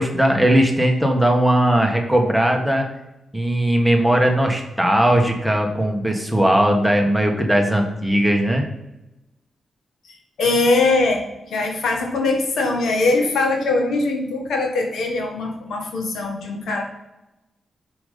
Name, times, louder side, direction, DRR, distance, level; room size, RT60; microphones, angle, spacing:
voice 1, 0.0-2.8 3.3-8.6, right 1 dB, ahead, 2 dB, 1.5 m, -18 dB
voice 2, 10.1-16.8, left 3 dB, 80° left, 2 dB, 1.6 m, -21 dB
5.8 x 5.4 x 5.1 m, 0.97 s
cardioid pair, 65°, 0 cm